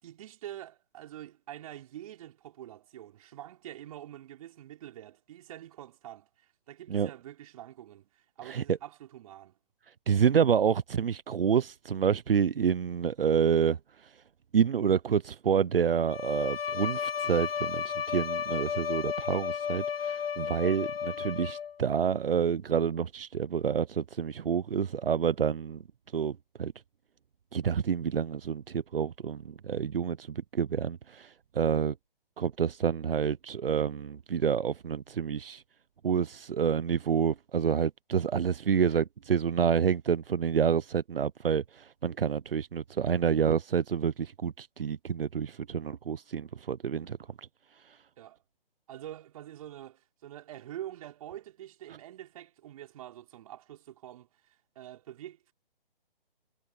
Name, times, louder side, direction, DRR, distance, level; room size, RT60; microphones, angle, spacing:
voice 1, 0.0-9.6 48.2-48.4 48.9-55.5, right 12 dB, 40° right, 6.0 m, -46 dB
voice 2, 8.4-8.8 10.1-14.1 14.5-25.8 26.1-26.7 27.5-31.9 32.4-35.6 36.0-47.5 47.9-48.0, right 7 dB, 75° right, 0.8 m, -28 dB
Bowed string instrument, 16.1-21.9, left 7 dB, 80° left, 0.7 m, -33 dB
hypercardioid pair, 150°, 29 cm